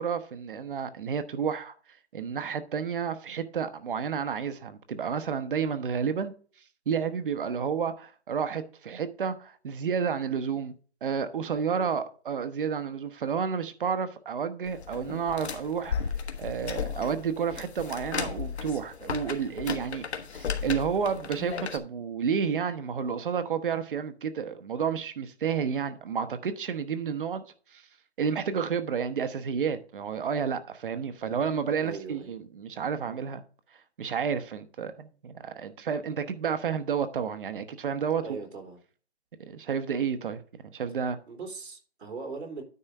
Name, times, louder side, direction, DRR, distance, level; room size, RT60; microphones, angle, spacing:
voice 1, 0.0-1.7 2.1-6.3 6.9-10.7 11.0-15.9 16.4-20.0 20.3-27.4 27.7-27.8 28.2-33.4 34.0-38.4 39.4-40.4 40.7-41.2, right 7 dB, 55° right, 1.1 m, -30 dB
sound 1, 14.7-21.8, left 6 dB, 80° left, 1.3 m, -35 dB
voice 2, 31.8-32.3 38.2-38.8 41.3-42.6, right 4 dB, 80° right, 3.3 m, -40 dB
9.7 x 3.6 x 6.6 m
hypercardioid pair, 155°, 32 cm